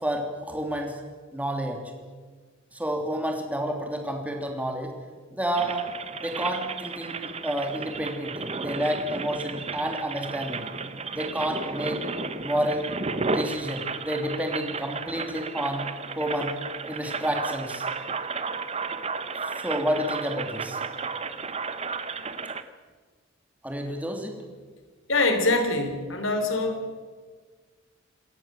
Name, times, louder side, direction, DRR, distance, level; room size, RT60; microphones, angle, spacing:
voice 1, 0.0-1.0 1.3-1.8 2.7-4.9 5.3-5.8 6.2-10.6 11.1-12.0 12.4-12.9 13.3-15.9 16.1-16.6 16.9-17.8 19.4-20.8 23.6-24.3, equal, 5° right, 2 dB, 3.2 m, -30 dB
sound 1, 5.5-22.6, right 4 dB, 30° right, 1.0 m, -33 dB
voice 2, 25.1-26.9, left 2 dB, 70° left, 6 dB, 3.7 m, -24 dB
27.0 x 13.5 x 7.7 m, 1.5 s
head